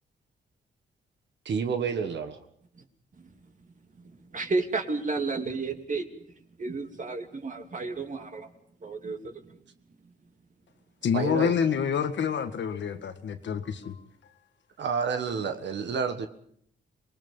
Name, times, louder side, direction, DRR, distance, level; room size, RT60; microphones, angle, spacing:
voice 1, 1.4-2.4 11.1-11.5 14.8-16.3, right 5 dB, 70° right, 1.6 m, -29 dB
voice 2, 4.3-6.0 6.6-8.5 8.8-9.3, right 3 dB, 45° right, 2.7 m, -31 dB
voice 3, 11.0-14.0, left 7 dB, 75° left, 1.8 m, -27 dB
26.0 x 20.0 x 5.6 m
cardioid pair, 85°, 19 cm